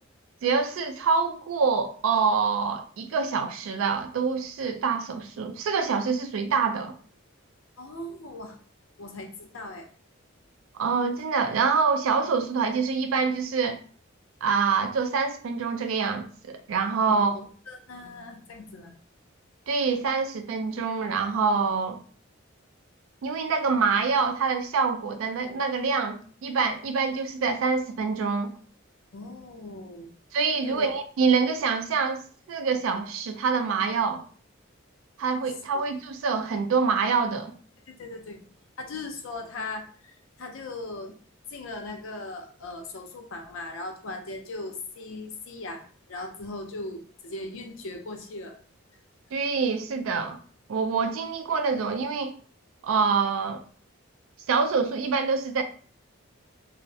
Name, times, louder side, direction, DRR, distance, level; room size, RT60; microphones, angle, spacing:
voice 1, 0.4-7.0 10.7-13.8 14.4-17.3 19.7-22.0 23.2-28.5 30.3-32.2 32.5-34.2 35.2-37.5 49.3-50.4 50.7-52.4 52.8-53.6 54.5-55.6, right 5 dB, 80° right, 7 dB, 0.3 m, -26 dB
voice 2, 7.8-8.6 9.0-9.9 17.1-18.9 29.1-30.1 30.6-30.9 35.7-35.8 37.9-38.4 38.8-41.1 41.5-48.6, left 2 dB, 75° left, 4 dB, 0.5 m, -39 dB
2.4 x 2.0 x 2.5 m, 0.43 s
head